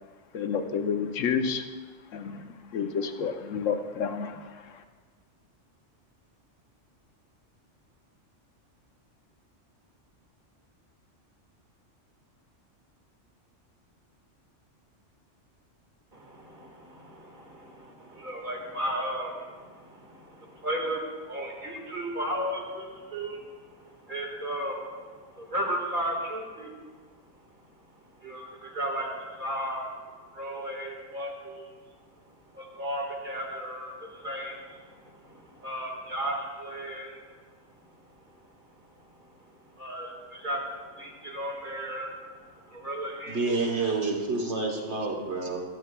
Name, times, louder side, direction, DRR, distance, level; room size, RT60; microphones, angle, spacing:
voice 1, 0.3-1.6 2.1-2.4 2.7-4.4, left 6 dB, 90° left, 7 dB, 1.1 m, -29 dB
voice 2, 16.1-26.9 27.6-27.7 28.1-31.7 32.2-37.2 38.0-38.2 39.0-43.9, right 1 dB, 40° right, -1 dB, 1.8 m, -35 dB
voice 3, 43.3-45.6, right 3 dB, 65° right, 1 dB, 1.4 m, -28 dB
14.0 x 11.0 x 2.2 m, 1.5 s
omnidirectional pair, 1.3 m